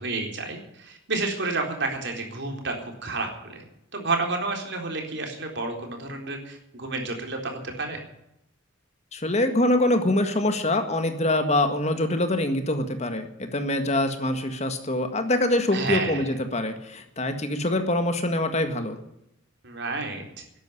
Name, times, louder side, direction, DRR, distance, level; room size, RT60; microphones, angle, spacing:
voice 1, 0.0-3.6 3.9-8.0 15.7-16.2 19.6-20.4, right 3 dB, 55° right, 3 dB, 4.0 m, -30 dB
voice 2, 9.1-19.0, left 1 dB, 35° left, 7 dB, 1.8 m, -24 dB
13.0 x 10.5 x 9.9 m, 0.82 s
head